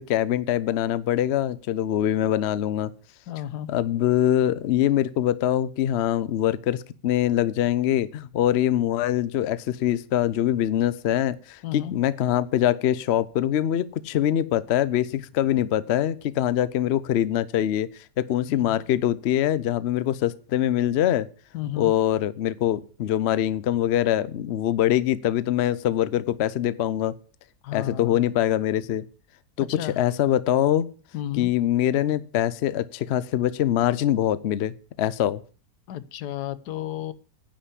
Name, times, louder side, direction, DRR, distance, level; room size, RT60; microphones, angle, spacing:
voice 1, 0.0-2.9 3.7-17.9 18.2-21.3 21.8-27.2 27.7-29.1 29.6-30.9 31.4-35.4, left 11 dB, 60° left, 16 dB, 0.7 m, -23 dB
voice 2, 3.3-3.7 11.6-11.9 18.5-18.8 21.5-21.9 27.6-28.3 29.6-30.0 31.1-31.5 35.9-37.1, left 12 dB, 85° left, 15 dB, 1.3 m, -33 dB
10.5 x 5.7 x 8.3 m, 0.38 s
omnidirectional pair, 1.7 m